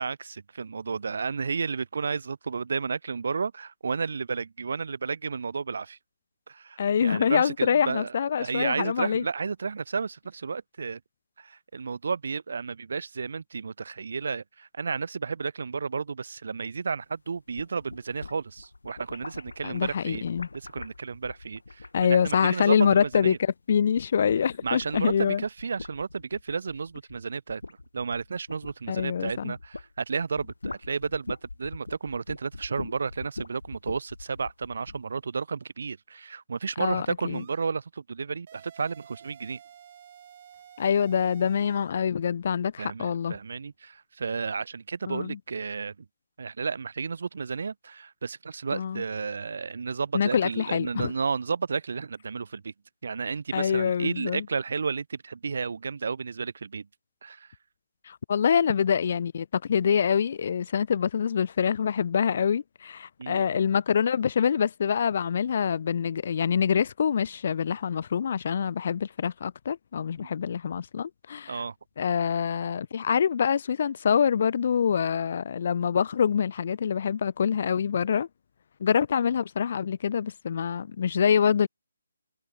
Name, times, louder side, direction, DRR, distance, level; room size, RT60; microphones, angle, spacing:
voice 1, 0.0-6.0 6.5-11.0 11.4-20.2 20.5-23.4 24.6-27.6 27.9-39.6 42.8-45.9 46.4-52.7 53.0-56.9 57.2-57.5 63.2-63.5 70.2-70.3 71.5-71.7, right 5 dB, 65° right, 1.3 m, -32 dB
voice 2, 6.8-9.2 19.6-20.5 21.9-25.4 28.9-29.5 36.8-37.4 40.8-43.4 45.1-45.4 48.7-49.0 50.1-51.1 53.5-54.5 58.1-71.6 72.0-78.3 78.8-81.7, left 7 dB, 50° left, 0.4 m, -25 dB
sound 1, 17.3-23.6 23.9-29.9 30.2-35.0, left 3 dB, 85° left, 2.6 m, -42 dB
sound 2, 37.3-37.7 38.5-42.0, right 9 dB, 40° right, 5.0 m, -51 dB
figure-of-eight pair, 155°, 0 cm